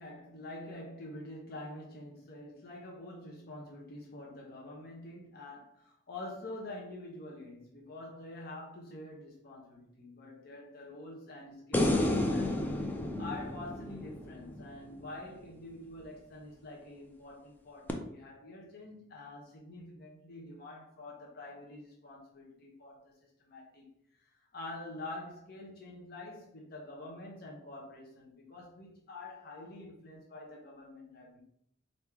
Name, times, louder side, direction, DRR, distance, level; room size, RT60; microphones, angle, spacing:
voice 1, 0.0-12.6 13.2-23.1 23.4-23.9 24.2-31.4, left 2 dB, 55° left, -2 dB, 0.8 m, -46 dB
sound 1, 11.7-15.1 17.9-18.0, left 1 dB, 10° left, 0.4 m, -31 dB
4.6 x 2.6 x 3.4 m, 0.69 s
head